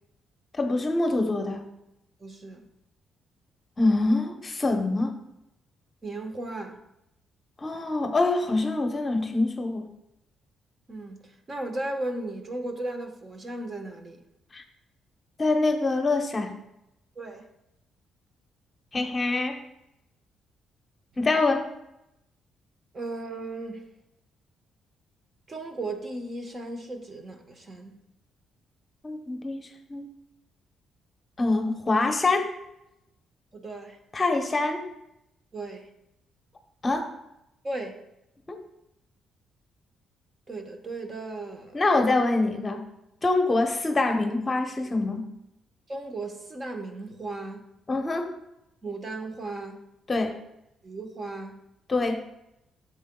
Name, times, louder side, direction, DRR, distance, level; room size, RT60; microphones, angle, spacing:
voice 1, 0.6-1.6 3.8-5.1 7.6-9.9 14.5-14.6 15.4-16.5 18.9-19.6 21.2-21.7 29.0-30.1 31.4-32.5 34.1-34.9 36.8-37.1 38.5-38.6 41.7-42.8 43.2-45.3 47.9-48.3 50.1-50.4 51.9-52.2, left 2 dB, 30° left, 0.9 m, -25 dB
voice 2, 2.2-2.6 6.0-6.8 10.9-11.2 11.5-14.2 17.2-17.5 22.9-23.8 25.5-28.0 33.5-34.0 35.5-35.9 37.6-38.0 40.5-41.8 45.9-47.6 48.8-49.8 50.8-51.6, right 2 dB, 35° right, 1.1 m, -36 dB
10.0 x 7.1 x 2.3 m
cardioid pair, 90°, 0 cm